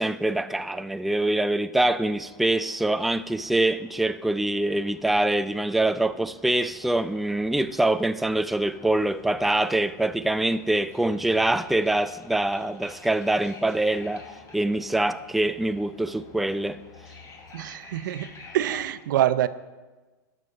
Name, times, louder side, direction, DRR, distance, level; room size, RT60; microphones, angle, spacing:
voice 1, 0.0-14.3 14.5-16.8, right 2 dB, ahead, 0.4 m, -24 dB
sound 1, 2.0-18.9, left 3 dB, 30° left, 2.7 m, -50 dB
voice 2, 17.5-18.3 18.5-19.5, right 12 dB, 75° right, 0.6 m, -25 dB
12.5 x 7.5 x 5.5 m
hypercardioid pair, 105°, 11 cm